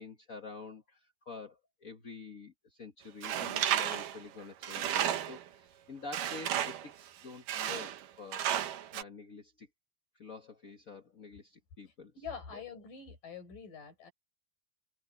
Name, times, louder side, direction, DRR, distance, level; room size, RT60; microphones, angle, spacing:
voice 1, 0.0-8.4 8.9-9.7 10.1-12.1 12.5-12.6, left 4 dB, 85° left, 0.7 m, -48 dB
Tools, 3.2-5.5 6.1-6.9 7.5-8.0 8.3-9.0, right 11 dB, 70° right, 2.8 m, -33 dB
voice 2, 12.2-14.1, left 6 dB, 70° left, 7.3 m, -45 dB
open air
omnidirectional pair, 4.0 m